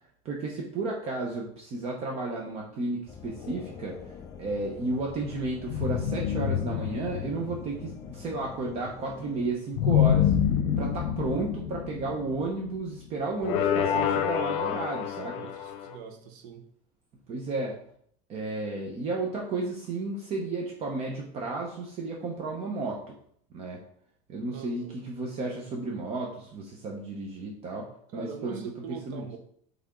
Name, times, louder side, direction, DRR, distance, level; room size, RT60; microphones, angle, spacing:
voice 1, 0.2-4.0 4.4-10.3 10.8-15.4 17.3-17.8 18.3-23.1 23.5-23.8 24.3-27.9 28.1-29.3, right 3 dB, 35° right, -1 dB, 0.9 m, -33 dB
sound 1, 3.1-9.5, left 6 dB, 20° left, 0.5 m, -46 dB
sound 2, 3.4-4.4 5.7-8.3 9.7-12.9 13.4-16.0, left 9 dB, 65° left, 0.7 m, -28 dB
voice 2, 15.3-16.6 24.5-25.0 28.1-29.4, right 7 dB, 70° right, 6 dB, 1.1 m, -42 dB
8.3 x 3.6 x 3.8 m, 0.65 s
cardioid pair, 165°, 18 cm